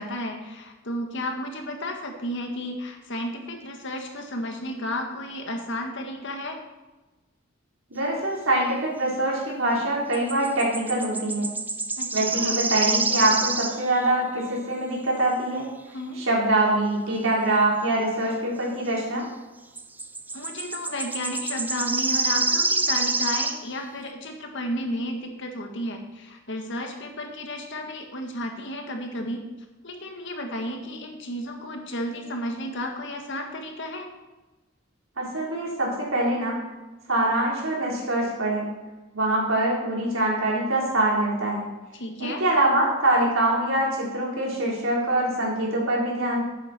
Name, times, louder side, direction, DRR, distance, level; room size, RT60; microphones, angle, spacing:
voice 1, 0.0-6.6 12.0-12.6 15.9-16.2 20.3-29.4 29.8-34.1 41.9-42.4, left 1 dB, 65° left, 3 dB, 1.9 m, -33 dB
voice 2, 7.9-11.5 12.1-15.7 16.2-19.3 35.2-36.7 37.1-38.7 39.1-41.7 42.2-46.4, right 1 dB, 85° right, -3 dB, 4.0 m, -24 dB
sound 1, 10.1-14.1 19.8-23.6, right 3 dB, 10° right, 0.5 m, -27 dB
12.0 x 9.0 x 4.4 m, 1.1 s
head